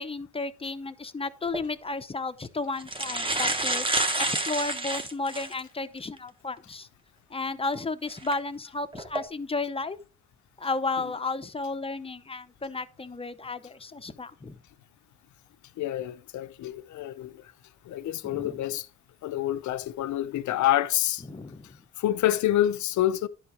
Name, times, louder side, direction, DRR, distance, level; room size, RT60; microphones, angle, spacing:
voice 1, 0.0-6.9 7.3-10.0 10.6-14.6 18.3-18.6 21.3-21.8, left 3 dB, 20° left, 0.7 m, -33 dB
sound 1, 1.4-1.6 2.4-2.5 2.8-5.6 6.2-6.3 8.1-8.3 8.9-9.2, right 2 dB, 15° right, 1.2 m, -28 dB
voice 2, 15.8-17.5 17.8-18.9 19.2-21.2 22.0-23.3, left 13 dB, 70° left, 0.7 m, -27 dB
11.0 x 4.5 x 4.9 m
cardioid pair, 90°, 30 cm